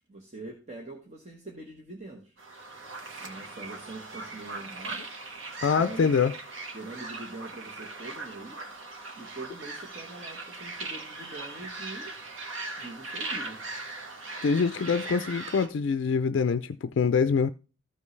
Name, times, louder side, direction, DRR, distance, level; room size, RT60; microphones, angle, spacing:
voice 1, 0.1-2.4 3.2-5.0 5.7-6.1 6.7-8.7 9.1-12.1 12.8-13.6, right 2 dB, 35° right, 1.2 m, -43 dB
sound 1, 2.4-15.7, right 3 dB, 85° right, 1.3 m, -39 dB
voice 2, 5.6-6.3 14.4-17.5, left 5 dB, 70° left, 0.4 m, -25 dB
14.0 x 5.3 x 3.2 m
head